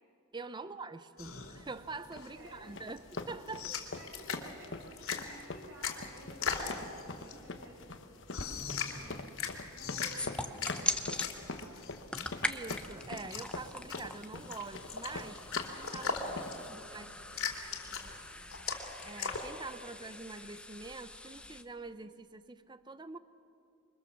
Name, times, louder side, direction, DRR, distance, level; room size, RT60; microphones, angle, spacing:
voice 1, 0.3-3.8 12.4-15.4 15.8-16.1 16.7-17.1 19.0-23.2, right 3 dB, 20° right, 12 dB, 0.6 m, -45 dB
sound 1, 1.2-19.5, left 5 dB, 75° left, 2.9 m, -40 dB
sound 2, 2.1-16.7, left 3 dB, 55° left, 1.2 m, -44 dB
voice 2, 2.3-2.7 3.9-8.1 8.9-12.2 16.0-18.7, right 1 dB, 60° right, -2 dB, 6.3 m, -55 dB
sound 3, 10.2-11.3 11.9-21.6, left 1 dB, 5° left, 0.9 m, -42 dB
27.5 x 23.5 x 7.2 m, 2.6 s
head